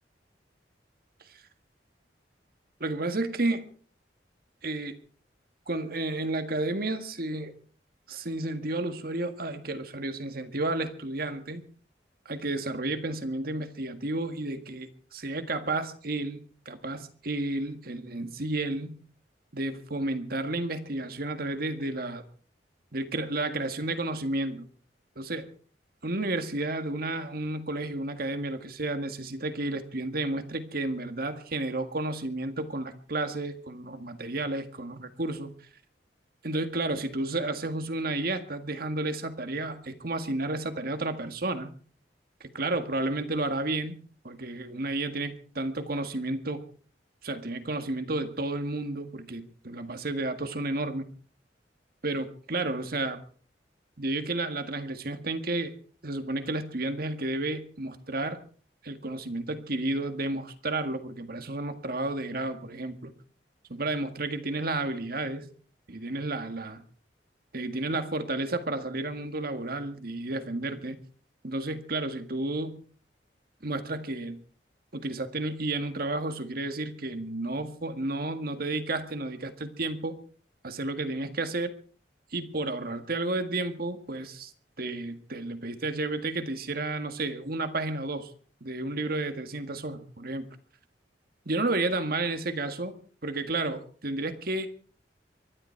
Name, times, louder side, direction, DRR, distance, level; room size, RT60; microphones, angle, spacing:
voice 1, 2.8-3.7 4.6-5.0 5.7-7.5 8.1-11.7 12.3-19.0 19.5-22.2 22.9-24.7 25.2-25.5 26.0-35.5 36.4-41.7 42.4-46.6 47.2-51.1 52.0-53.2 54.0-55.7 56.0-58.4 58.8-63.1 63.7-65.5 65.9-66.8 67.5-71.0 71.4-72.8 73.6-74.4 74.9-80.2 80.6-81.7 82.3-84.5 84.8-88.3 88.6-90.5 91.5-93.0 93.2-94.7, right 2 dB, 60° right, 9 dB, 1.8 m, -32 dB
24.0 x 11.5 x 4.6 m, 0.42 s
head